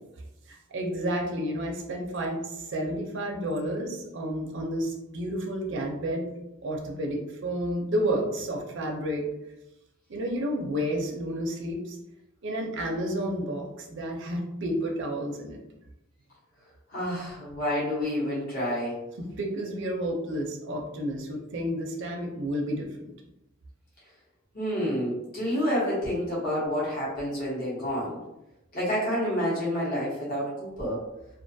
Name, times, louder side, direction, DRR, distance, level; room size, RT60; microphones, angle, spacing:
voice 1, 0.5-6.3 6.6-9.2 10.1-12.0 12.4-15.6 19.2-22.9, equal, 60° right, 0 dB, 0.5 m, -31 dB
voice 2, 16.9-19.0 24.5-28.2 28.7-31.0, equal, 45° left, -7 dB, 0.9 m, -29 dB
2.4 x 2.3 x 2.6 m, 0.92 s
head